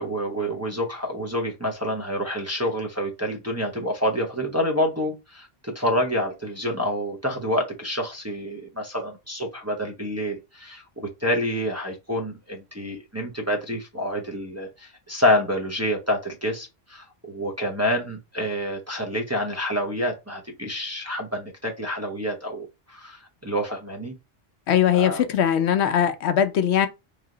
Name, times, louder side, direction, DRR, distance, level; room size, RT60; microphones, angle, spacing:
voice 1, 0.0-24.1 24.9-25.2, equal, 15° right, 0.7 m, -28 dB
voice 2, 24.7-26.9, left 9 dB, 80° left, 0.9 m, -20 dB
3.2 x 2.9 x 3.8 m
omnidirectional pair, 1.1 m